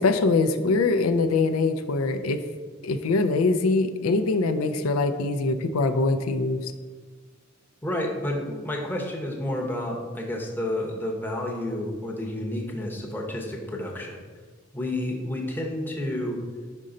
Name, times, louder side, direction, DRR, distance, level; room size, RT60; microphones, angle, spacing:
voice 1, 0.0-2.4 2.8-6.7, left 3 dB, 90° left, 9 dB, 0.4 m, -23 dB
voice 2, 7.8-14.2 14.7-16.4, left 1 dB, 10° left, 0 dB, 0.8 m, -30 dB
5.3 x 5.2 x 3.8 m, 1.5 s
head